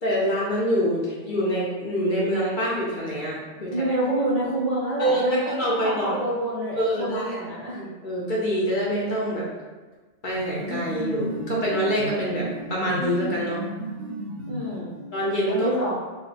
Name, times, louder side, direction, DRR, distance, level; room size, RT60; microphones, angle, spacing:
voice 1, 0.0-3.9 5.0-6.1 6.8-7.4 7.7-9.4 10.2-13.6 15.1-15.7, equal, 50° left, -5 dB, 0.7 m, -25 dB
voice 2, 3.5-7.8 14.5-15.0 15.5-16.0, right 1 dB, 50° right, -8 dB, 0.4 m, -27 dB
sound 1, 10.3-15.2, right 1 dB, 85° right, 1.0 m, -33 dB
2.7 x 2.1 x 3.9 m, 1.3 s
omnidirectional pair, 1.2 m